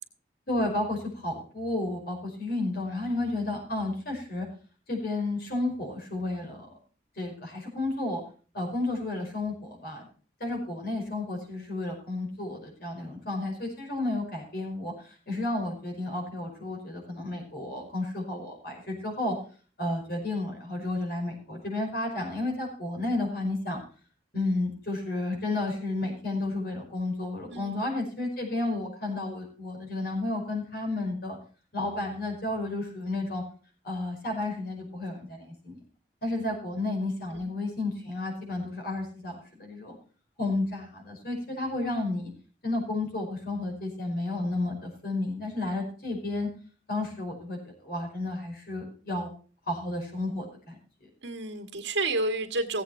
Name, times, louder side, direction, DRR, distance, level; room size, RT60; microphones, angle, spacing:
voice 1, 0.5-4.5 4.9-6.7 7.2-8.2 8.5-10.1 10.4-19.4 19.8-23.8 24.3-31.4 31.7-33.4 33.8-35.8 36.2-40.0 40.4-42.3 42.6-46.5 46.9-49.3 49.7-51.1, left 2 dB, 55° left, 1 dB, 5.4 m, -32 dB
voice 2, 51.2-52.8, right 2 dB, 75° right, 5 dB, 1.8 m, -30 dB
16.5 x 8.2 x 4.4 m, 0.39 s
head